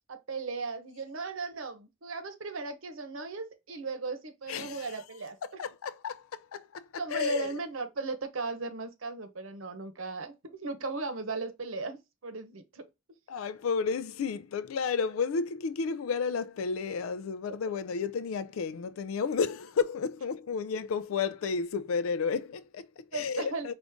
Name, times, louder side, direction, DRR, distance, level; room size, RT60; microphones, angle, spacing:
voice 1, 0.1-5.6 7.0-12.9 23.1-23.7, right 3 dB, 75° right, 0.9 m, -37 dB
voice 2, 4.5-4.9 5.6-7.5 13.3-23.7, left 5 dB, 85° left, 0.4 m, -32 dB
5.0 x 2.5 x 3.5 m
head